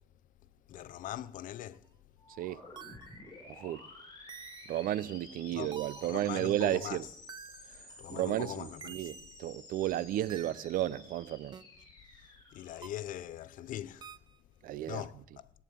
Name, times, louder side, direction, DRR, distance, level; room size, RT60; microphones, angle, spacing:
voice 1, 0.7-1.9 5.5-5.8 6.0-7.0 8.0-9.1 12.1-14.2 14.9-15.5, left 12 dB, 65° left, 0.7 m, -42 dB
sound 1, 1.7-1.8 2.8-3.2 4.3-4.9 5.7-6.3 7.3-7.8 8.8-9.4 10.3-10.7 11.5-11.6 12.8-13.1 14.0-14.4, right 7 dB, 30° right, 0.6 m, -49 dB
sound 2, 2.2-13.9, left 2 dB, 25° left, 5.9 m, -53 dB
voice 2, 3.5-3.8 4.7-7.1 8.1-11.6 14.6-15.1, right 13 dB, 70° right, 0.7 m, -33 dB
18.0 x 9.3 x 8.5 m
cardioid pair, 145°, 15 cm